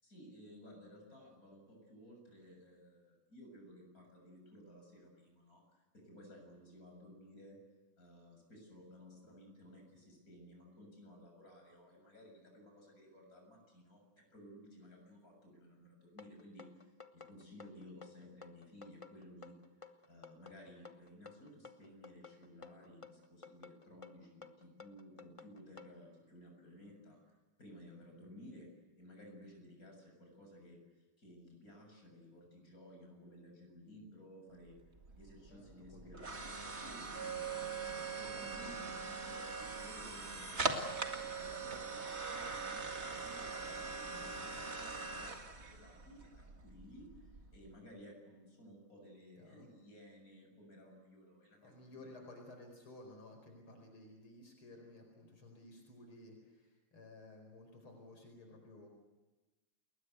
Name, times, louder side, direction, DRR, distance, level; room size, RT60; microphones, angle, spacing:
voice 1, 0.0-7.6 8.0-19.6 20.1-27.2 27.6-28.7 29.0-34.8 35.2-36.3 36.7-52.2, equal, 40° left, 2 dB, 7.7 m, -56 dB
sound 1, 16.2-25.9, left 4 dB, 25° left, 0.7 m, -54 dB
sound 2, 34.7-47.7, right 4 dB, 30° right, 2.2 m, -42 dB
voice 2, 35.5-36.4 49.4-49.7 51.6-58.9, left 2 dB, 80° left, 3 dB, 5.5 m, -55 dB
29.5 x 21.0 x 8.2 m, 1.2 s
omnidirectional pair, 2.3 m